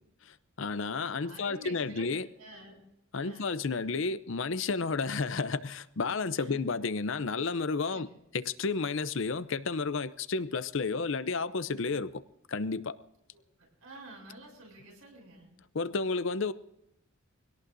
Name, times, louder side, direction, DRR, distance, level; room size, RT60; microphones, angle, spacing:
voice 1, 0.3-2.3 3.1-8.1 8.3-12.2 12.5-12.9 15.7-16.5, left 4 dB, 60° left, 14 dB, 0.6 m, -31 dB
voice 2, 1.1-2.8 3.2-3.5 6.4-6.6 7.8-8.1 13.3-13.4 13.8-15.5, right 1 dB, 80° right, 0 dB, 7.1 m, -49 dB
24.0 x 17.5 x 2.7 m, 0.84 s
head